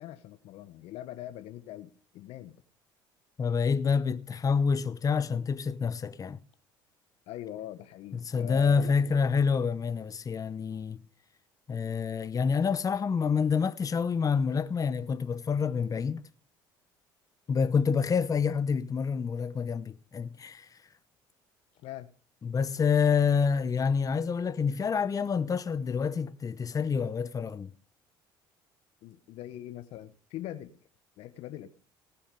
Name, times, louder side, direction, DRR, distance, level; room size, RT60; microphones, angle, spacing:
voice 1, 0.0-2.6 7.3-9.0 21.8-22.1 29.0-30.7 31.2-31.7, left 13 dB, 65° left, 1.0 m, -42 dB
voice 2, 3.4-6.4 8.2-11.0 11.7-16.2 17.5-20.7 22.4-27.7, left 6 dB, 30° left, 0.9 m, -27 dB
18.5 x 7.0 x 5.2 m
hypercardioid pair, 65°, 11 cm